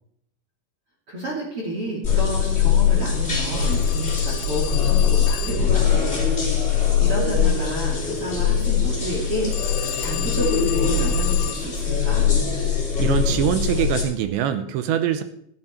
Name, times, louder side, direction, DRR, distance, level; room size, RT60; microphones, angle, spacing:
voice 1, 1.1-6.3 6.5-12.3, right 1 dB, 35° right, -4 dB, 2.7 m, -30 dB
sound 1, 2.0-14.0, left 7 dB, 20° left, 2.8 m, -21 dB
Telephone, 3.5-5.8 9.5-11.7, left 16 dB, 85° left, 3.2 m, -33 dB
voice 2, 13.0-15.2, right 10 dB, 80° right, 9 dB, 2.7 m, -23 dB
14.5 x 9.9 x 4.4 m, 0.71 s
omnidirectional pair, 5.7 m